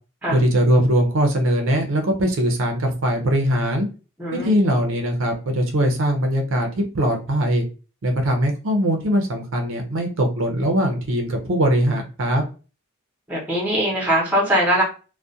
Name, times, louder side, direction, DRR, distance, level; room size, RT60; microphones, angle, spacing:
voice 1, 0.3-3.9 4.3-6.7 6.9-7.6 8.0-12.4, equal, 65° right, 3 dB, 0.5 m, -21 dB
voice 2, 4.2-4.5 13.3-14.8, equal, 10° right, -3 dB, 0.7 m, -21 dB
2.3 x 2.1 x 2.6 m, 0.34 s
head